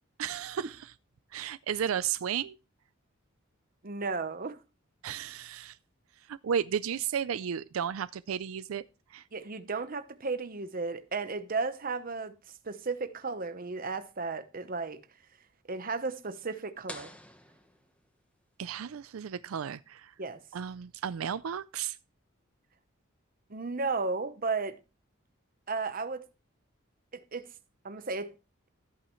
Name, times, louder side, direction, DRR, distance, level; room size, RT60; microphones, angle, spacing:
voice 1, 0.2-0.9 1.3-2.6 5.0-5.8 6.3-8.8 9.1-9.2 18.6-20.1 20.5-22.0, right 8 dB, 85° right, 0.4 m, -33 dB
voice 2, 3.8-4.6 9.3-12.4 12.6-15.0 15.7-17.1 20.2-20.4 23.5-24.8 25.7-26.3 27.1-27.5 27.8-28.3, right 4 dB, 45° right, 0.9 m, -34 dB
sound 1, 16.9-18.6, left 1 dB, 5° left, 1.1 m, -48 dB
13.5 x 8.7 x 3.1 m
head